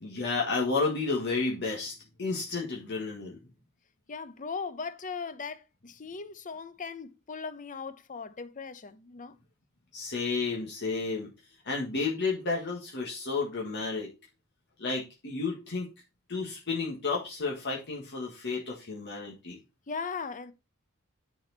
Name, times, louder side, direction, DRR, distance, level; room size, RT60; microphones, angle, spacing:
voice 1, 0.0-1.9 2.2-3.4 9.9-11.3 11.6-14.1 14.8-15.9 16.3-19.6, left 4 dB, 55° left, 1.6 m, -31 dB
voice 2, 4.1-9.4 19.9-20.5, left 5 dB, 35° left, 0.7 m, -38 dB
9.9 x 4.3 x 4.0 m
head